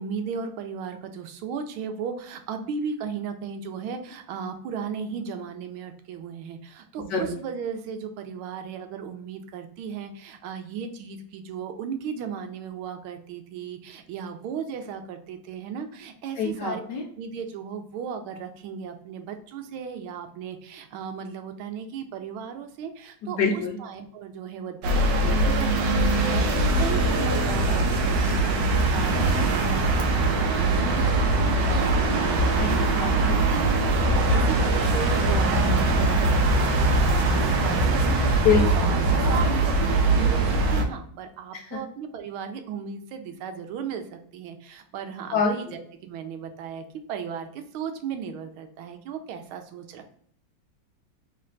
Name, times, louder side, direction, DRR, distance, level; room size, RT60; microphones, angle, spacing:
voice 1, 0.0-16.8 17.2-32.9 33.2-46.8 47.1-50.2, right 6 dB, 85° right, 7 dB, 1.5 m, -36 dB
voice 2, 7.0-7.4 16.4-17.0 23.2-23.8 32.6-33.5 38.4-38.8 41.5-41.8 45.3-45.5, left 5 dB, 65° left, 1 dB, 1.2 m, -26 dB
sound 1, 24.8-40.8, right 2 dB, 70° right, 1.3 m, -22 dB
3.3 x 3.2 x 3.7 m, 0.62 s
omnidirectional pair, 2.3 m